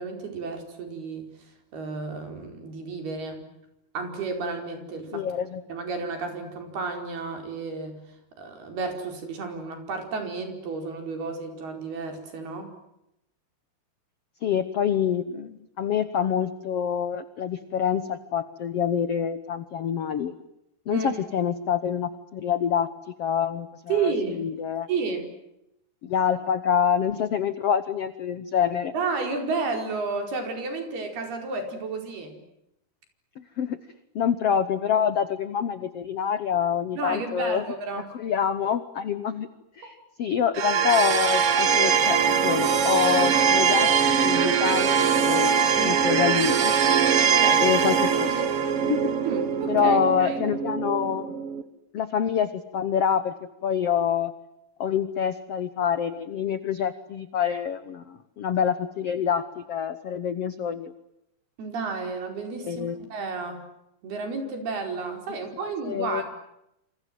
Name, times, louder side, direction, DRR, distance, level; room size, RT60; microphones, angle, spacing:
voice 1, 0.0-3.4 3.9-5.3 5.7-12.7 20.9-21.1 23.9-24.5 24.9-25.3 28.9-32.4 36.9-38.1 45.8-46.0 47.3-47.7 49.2-50.5 61.6-63.6 64.0-66.2, right 4 dB, 75° right, 5 dB, 6.8 m, -32 dB
voice 2, 5.1-5.6 14.4-20.3 20.9-22.9 23.2-24.9 26.0-28.9 33.4-33.8 34.1-37.6 38.1-39.5 39.8-45.5 45.8-46.7 47.6-48.4 48.9-49.0 49.7-51.3 51.9-53.3 53.6-54.3 54.8-60.9 62.6-63.0 65.6-66.2, left 8 dB, 85° left, 12 dB, 1.3 m, -26 dB
sound 1, 40.5-51.6, right 7 dB, 55° right, 1.7 m, -22 dB
28.0 x 27.5 x 7.8 m, 0.83 s
omnidirectional pair, 4.6 m